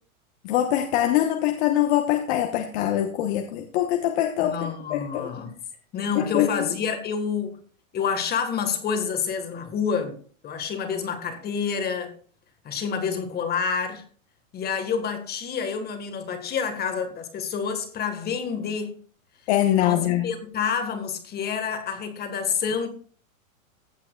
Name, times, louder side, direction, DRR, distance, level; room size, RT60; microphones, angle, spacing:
voice 1, 0.4-5.3 6.1-6.6 19.5-20.3, left 12 dB, 50° left, 1.1 m, -23 dB
voice 2, 4.4-5.5 5.9-7.6 7.9-12.2 12.6-14.0 14.5-19.0 19.6-22.9, left 6 dB, 25° left, 1.6 m, -28 dB
15.5 x 7.5 x 2.3 m
hypercardioid pair, 135°, 41 cm